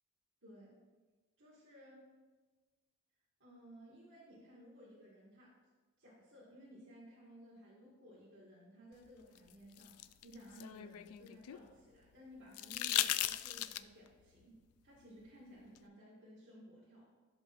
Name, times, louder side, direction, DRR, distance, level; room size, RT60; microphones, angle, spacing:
voice 1, 0.4-0.8 1.4-2.0 3.4-5.5 6.0-9.9 10.2-14.6 14.8-17.0, equal, 55° right, -8 dB, 2.0 m, -57 dB
sound 1, 9.4-11.6 12.5-14.1 15.8-15.9, left 13 dB, 90° left, 0.3 m, -37 dB
14.0 x 5.9 x 2.7 m, 1.3 s
head